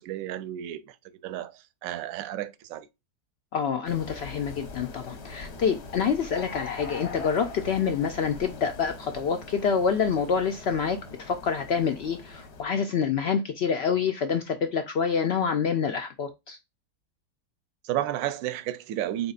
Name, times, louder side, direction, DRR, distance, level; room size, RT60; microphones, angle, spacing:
voice 1, 0.0-2.9 17.8-19.3, right 13 dB, 70° right, 0.9 m, -32 dB
voice 2, 3.5-16.6, left 6 dB, 75° left, 0.5 m, -27 dB
sound 1, 3.9-12.6, left 4 dB, 55° left, 0.9 m, -42 dB
4.1 x 3.5 x 2.3 m
omnidirectional pair, 1.6 m